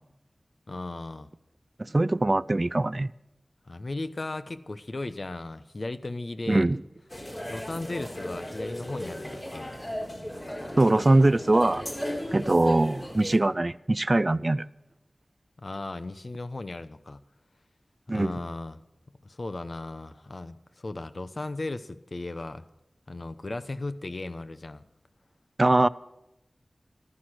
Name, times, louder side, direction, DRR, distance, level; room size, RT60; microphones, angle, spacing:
voice 1, 0.7-1.3 3.7-6.7 7.5-9.8 15.6-17.2 18.1-18.8 19.2-22.6 23.1-24.8, left 2 dB, 60° left, 0.9 m, -36 dB
voice 2, 1.8-3.1 6.5-6.8 10.8-11.8 12.3-14.7 18.1-18.3 25.6-25.9, right 2 dB, 40° right, 0.5 m, -22 dB
sound 1, 7.1-13.4, equal, 35° left, 4.1 m, -36 dB
14.5 x 12.0 x 6.2 m
wide cardioid pair, 50°, 0 cm